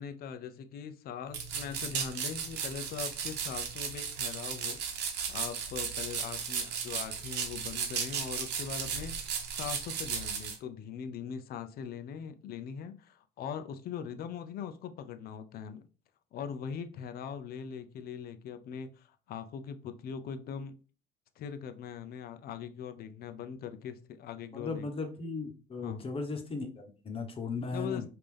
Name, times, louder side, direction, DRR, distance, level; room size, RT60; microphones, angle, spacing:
voice 1, 0.0-4.8 5.0-15.9 16.3-20.8 21.4-24.8 25.8-26.0 27.7-28.1, left 7 dB, 65° left, 9 dB, 0.6 m, -41 dB
sound 1, 1.3-10.6, right 7 dB, 80° right, 1.0 m, -35 dB
voice 2, 24.5-28.1, left 4 dB, 35° left, 4 dB, 1.1 m, -37 dB
5.3 x 2.8 x 3.4 m, 0.35 s
cardioid pair, 110°, 17 cm